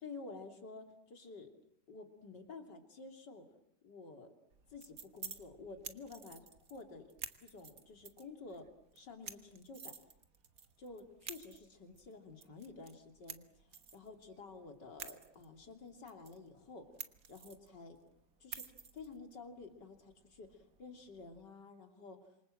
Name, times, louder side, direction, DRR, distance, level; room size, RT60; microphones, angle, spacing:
voice 1, 0.0-1.5 1.9-3.4 3.8-4.3 4.7-6.4 6.7-7.0 7.4-8.7 8.9-10.0 10.8-13.4 13.9-16.9 17.3-18.0 18.4-22.2, left 4 dB, 80° left, 5 dB, 3.6 m, -51 dB
sound 1, 4.5-21.4, right 6 dB, 55° right, 1.8 m, -53 dB
27.5 x 25.0 x 7.7 m, 0.78 s
omnidirectional pair, 1.8 m